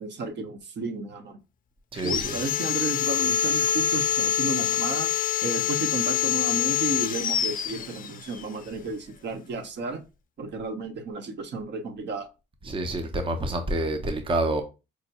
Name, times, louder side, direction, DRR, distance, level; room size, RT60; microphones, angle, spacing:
voice 1, 0.0-1.4 2.0-5.1 5.4-10.0 10.4-12.3, right 3 dB, 60° right, 0.8 m, -33 dB
voice 2, 1.9-2.4 12.6-14.6, right 1 dB, 25° right, 0.6 m, -28 dB
Sawing, 2.0-8.4, left 10 dB, 45° left, 0.4 m, -26 dB
4.9 x 2.2 x 2.8 m
cardioid pair, 90°, 20 cm